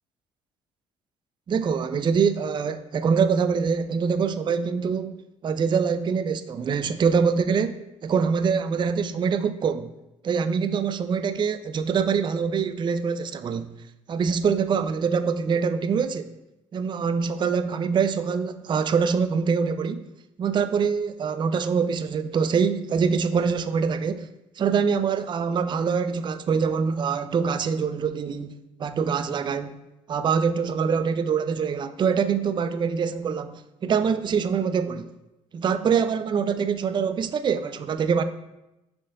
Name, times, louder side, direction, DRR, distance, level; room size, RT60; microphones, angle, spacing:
voice 1, 1.5-5.1 5.4-9.9 10.2-13.7 14.1-16.3 16.7-20.1 20.4-24.3 24.6-29.8 30.1-35.1 35.5-38.2, right 6 dB, 30° right, 0.4 m, -24 dB
5.5 x 2.6 x 3.8 m
hypercardioid pair, 55°, 16 cm